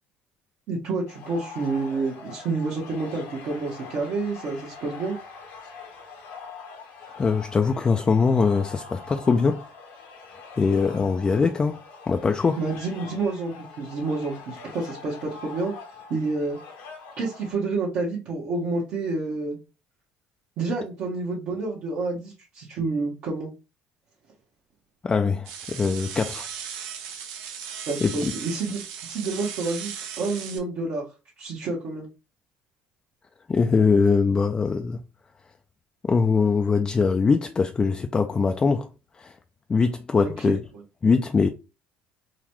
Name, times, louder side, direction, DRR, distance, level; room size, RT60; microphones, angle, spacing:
voice 1, 0.7-5.2 12.6-15.7 16.1-16.6 17.2-19.6 20.6-23.5 27.9-29.9 30.2-31.0 31.4-32.1 40.2-40.6, right 3 dB, 60° right, 1.0 m, -29 dB
sound 1, 1.1-17.5, left 5 dB, 80° left, 1.1 m, -43 dB
voice 2, 7.1-9.6 10.6-11.8 12.1-12.6 25.0-26.5 28.0-28.3 33.5-35.0 36.0-38.9 39.2-39.4 39.7-40.6 41.0-41.5, left 5 dB, 25° left, 0.3 m, -22 dB
sound 2, 25.5-30.6, right 7 dB, 85° right, 0.6 m, -37 dB
3.9 x 2.2 x 3.0 m
supercardioid pair, 90°, 3 cm